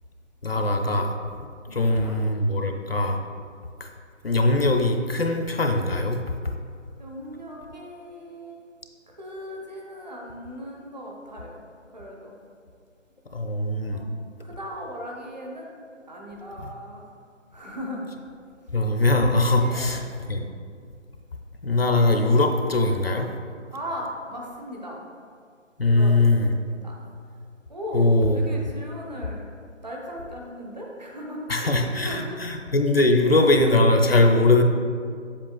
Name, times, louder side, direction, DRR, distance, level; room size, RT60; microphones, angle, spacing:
voice 1, 0.4-1.1 1.7-3.2 4.2-6.2 13.3-14.0 16.6-16.7 18.7-20.0 20.3-20.5 21.6-23.3 25.8-26.5 27.9-28.4 31.5-34.6, left 2 dB, 50° left, 4 dB, 0.5 m, -21 dB
voice 2, 1.7-2.2 2.5-2.6 7.0-8.6 9.2-11.6 11.9-12.3 13.9-14.1 14.4-15.7 16.1-17.0 17.5-18.1 19.6-19.9 23.7-25.0 25.8-27.0 27.7-29.5 29.8-32.4, equal, 35° right, -2 dB, 0.9 m, -37 dB
7.6 x 6.9 x 2.4 m, 2.2 s
figure-of-eight pair, 165°, 38 cm